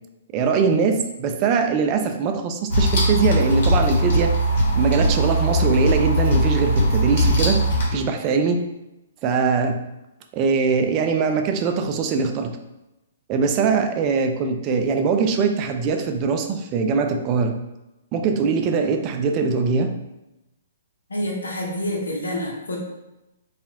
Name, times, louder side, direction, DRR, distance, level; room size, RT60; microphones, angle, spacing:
voice 1, 0.3-4.3 4.7-7.6 7.9-8.6 9.2-9.8 10.3-12.6 13.3-17.6 18.1-19.9, right 5 dB, 35° right, 5 dB, 0.3 m, -22 dB
sound 1, 2.7-7.9, equal, 55° left, 1.0 m, -20 dB
voice 2, 21.1-22.8, left 1 dB, 85° left, -1 dB, 0.8 m, -27 dB
2.8 x 2.4 x 2.7 m, 0.95 s
hypercardioid pair, 130°, 0 cm